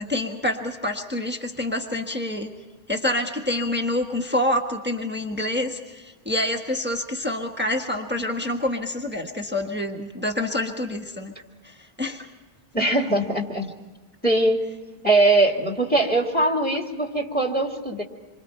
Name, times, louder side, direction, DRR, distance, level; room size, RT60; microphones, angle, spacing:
voice 1, 0.0-2.5 2.9-11.3 11.6-12.3, left 1 dB, 10° right, 3 dB, 1.5 m, -27 dB
voice 2, 12.7-13.7 14.2-14.6 15.0-18.0, right 2 dB, 10° left, 1 dB, 2.1 m, -21 dB
27.5 x 24.5 x 4.5 m, 1.2 s
omnidirectional pair, 1.1 m